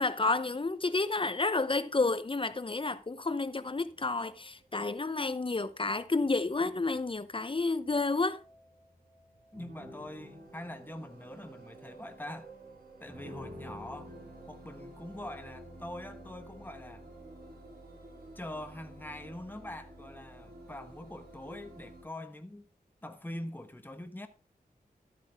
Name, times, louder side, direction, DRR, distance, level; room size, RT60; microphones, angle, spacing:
voice 1, 0.0-8.4, left 3 dB, 30° left, 0.7 m, -30 dB
sound 1, 3.8-22.0, right 1 dB, 75° right, 4.8 m, -51 dB
voice 2, 9.5-12.5 13.0-14.1 14.5-17.0 18.3-22.6 23.0-24.3, left 1 dB, 10° left, 1.3 m, -43 dB
12.5 x 8.5 x 3.5 m
wide cardioid pair, 95°, 16 cm